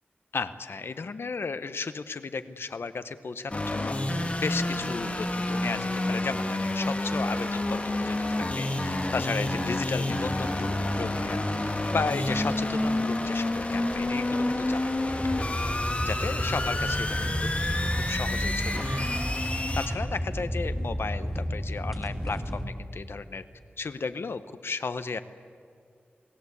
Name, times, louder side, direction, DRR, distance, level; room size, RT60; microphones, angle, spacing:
voice 1, 0.3-11.4 11.9-15.3 16.0-17.3 17.7-17.8 18.1-19.1 19.7-23.4 23.8-25.2, left 4 dB, 80° left, 11 dB, 1.0 m, -34 dB
sound 1, 3.4-6.5 6.8-14.0 15.6-20.3, right 1 dB, 35° right, 7.1 m, -49 dB
sound 2, 3.5-19.9, left 1 dB, 35° left, 3.0 m, -29 dB
sound 3, 15.1-22.7, equal, 5° right, 3.1 m, -32 dB
29.0 x 19.0 x 8.4 m, 2.2 s
wide cardioid pair, 85°, 4 cm